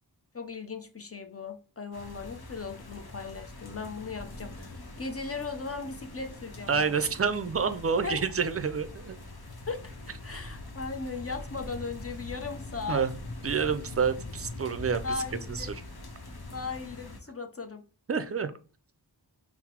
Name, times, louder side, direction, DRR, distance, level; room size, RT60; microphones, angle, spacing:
voice 1, 0.3-7.1 8.0-8.2 9.7-9.8 10.2-13.0 15.0-15.7 16.5-17.8, left 4 dB, 35° left, 5 dB, 0.6 m, -37 dB
sound 1, 1.9-17.2, left 2 dB, 65° left, 0.8 m, -43 dB
voice 2, 6.7-9.2 12.9-13.2 13.4-15.8 18.1-18.5, right 6 dB, 35° right, 10 dB, 0.4 m, -28 dB
5.7 x 2.0 x 2.9 m, 0.38 s
wide cardioid pair, 45°, 41 cm